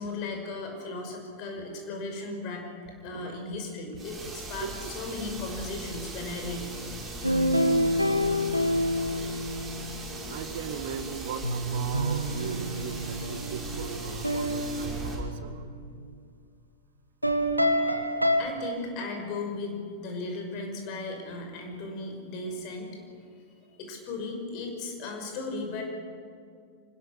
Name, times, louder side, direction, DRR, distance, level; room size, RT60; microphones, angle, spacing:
voice 1, 0.0-2.7 3.0-6.7 17.9-18.1 18.4-22.9 23.2-25.8, left 3 dB, 40° left, 3 dB, 5.8 m, -36 dB
voice 2, 3.0-3.5 4.6-4.9 9.9-15.6 17.6-17.8, right 7 dB, 55° right, 9 dB, 1.9 m, -39 dB
sound 1, 4.0-15.2, right 2 dB, 15° right, 6.2 m, -39 dB
sound 2, 7.2-10.1 11.4-16.0 17.2-18.4, equal, 90° right, 1.7 m, -28 dB
25.0 x 20.5 x 7.0 m, 2.2 s
figure-of-eight pair, 90°, 0 cm